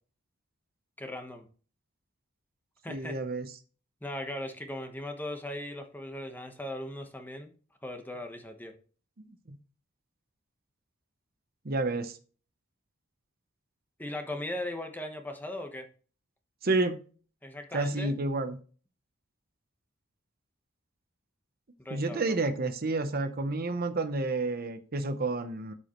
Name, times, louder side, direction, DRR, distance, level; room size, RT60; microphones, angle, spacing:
voice 1, 1.0-1.5 2.8-3.2 4.0-7.5 7.8-8.7 14.0-15.9 17.4-18.1 21.8-22.4, left 1 dB, 10° left, 1.1 m, -38 dB
voice 2, 2.9-3.5 9.5-9.6 11.6-12.2 16.6-17.0 17.7-18.6 21.9-25.7, right 2 dB, 45° right, 0.8 m, -30 dB
12.5 x 5.1 x 3.1 m
head